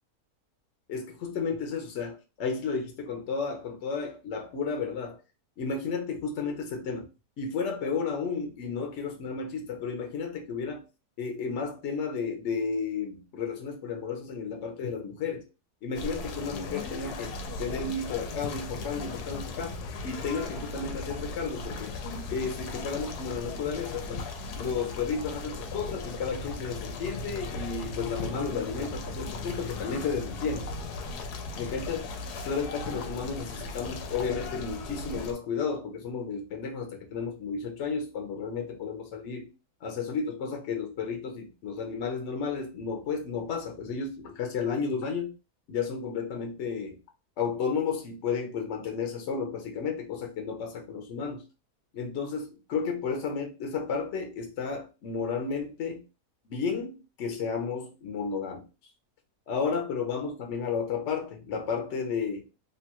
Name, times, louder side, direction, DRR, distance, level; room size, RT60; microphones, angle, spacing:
voice 1, 0.9-5.2 5.6-7.1 7.4-10.8 11.2-15.4 15.8-19.7 20.0-22.0 22.3-24.2 24.6-30.6 31.6-32.1 32.4-39.5 39.8-45.3 45.7-47.0 47.4-51.4 51.9-56.0 56.5-58.6 59.5-62.5, left 5 dB, 60° left, 0.9 m, -32 dB
sound 1, 15.9-35.3, left 3 dB, 90° left, 1.1 m, -37 dB
3.0 x 2.3 x 2.8 m
omnidirectional pair, 1.6 m